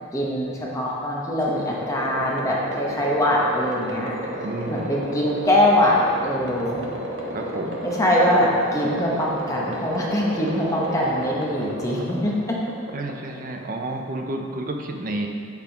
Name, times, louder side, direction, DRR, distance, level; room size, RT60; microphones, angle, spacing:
voice 1, 0.1-4.1 4.7-6.0 6.2-6.8 7.8-12.4, left 1 dB, 15° left, -4 dB, 0.9 m, -22 dB
sound 1, 1.4-14.0, right 1 dB, 80° right, 1.1 m, -32 dB
voice 2, 4.4-4.9 7.3-7.8 12.9-15.3, right 2 dB, 45° right, 2 dB, 0.6 m, -30 dB
8.2 x 3.5 x 5.7 m, 2.3 s
head